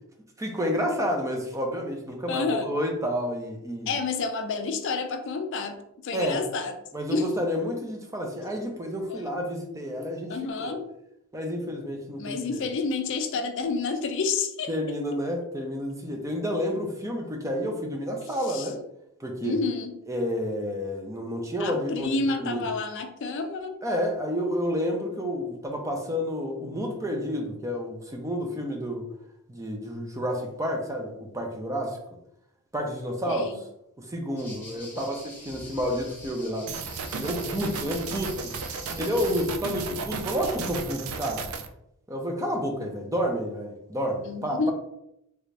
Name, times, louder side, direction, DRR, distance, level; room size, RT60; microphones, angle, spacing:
voice 1, 0.4-4.0 6.1-6.4 6.9-10.8 11.3-12.6 14.7-18.8 19.2-19.6 20.1-22.7 23.8-29.1 29.5-32.0 32.7-33.5 34.0-36.7 37.1-38.5 38.9-41.5 42.1-44.7, equal, 15° right, 2 dB, 0.5 m, -30 dB
voice 2, 2.3-2.7 3.9-5.7 6.0-6.7 7.1-7.3 9.1-9.3 10.3-10.9 12.2-14.7 18.5-18.7 19.4-20.0 21.6-23.8 33.3-33.6 44.2-44.7, left 4 dB, 55° left, 6 dB, 0.4 m, -29 dB
sound 1, 34.4-39.5, left 1 dB, 10° left, 0.8 m, -46 dB
sound 2, 36.7-41.7, right 5 dB, 70° right, 0.4 m, -34 dB
3.3 x 2.6 x 3.2 m, 0.81 s
head